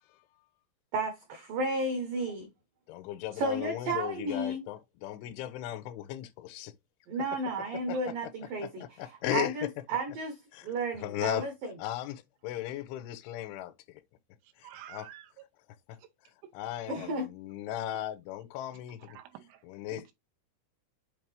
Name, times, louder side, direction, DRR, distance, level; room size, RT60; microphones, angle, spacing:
voice 1, 0.9-2.5 3.3-4.6 7.1-11.7 16.9-17.3, right 2 dB, 70° right, 2.1 m, -33 dB
voice 2, 2.9-6.7 7.9-8.3 8.6-9.5 10.5-10.7 11.0-11.5 11.8-14.0 14.6-15.1 15.9-16.0 16.5-19.0 19.7-20.1, left 13 dB, 80° left, 3.0 m, -37 dB
voice 3, 14.4-15.5 16.0-16.1 16.4-16.5 19.0-20.1, right 11 dB, 85° right, 3.6 m, -50 dB
8.7 x 3.2 x 3.4 m
omnidirectional pair, 5.7 m